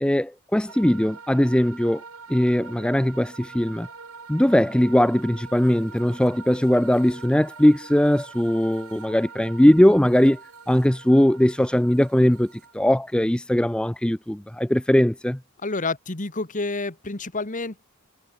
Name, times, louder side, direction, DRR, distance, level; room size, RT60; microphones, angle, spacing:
voice 1, 0.0-2.0 2.3-3.9 4.3-10.4 10.7-15.4, equal, 5° left, 0.5 m, -20 dB
sound 1, 0.7-12.7, right 5 dB, 70° right, 4.0 m, -44 dB
voice 2, 15.6-17.8, left 3 dB, 35° left, 1.6 m, -29 dB
head